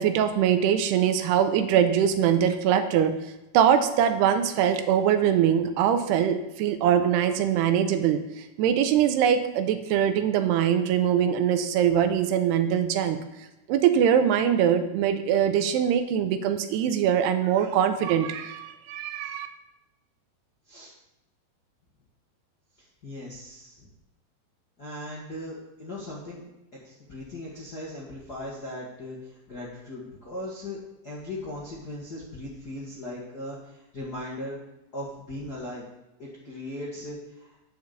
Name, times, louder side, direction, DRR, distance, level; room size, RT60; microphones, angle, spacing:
voice 1, 0.0-3.1 3.5-8.2 8.6-13.2 13.7-19.5, right 9 dB, 85° right, 8 dB, 2.8 m, -22 dB
voice 2, 23.0-23.9 24.8-26.4 26.8-30.8 31.0-34.6 34.9-35.8 36.2-37.5, left 1 dB, 60° left, -6 dB, 1.0 m, -38 dB
9.5 x 7.0 x 6.9 m, 0.95 s
omnidirectional pair, 4.8 m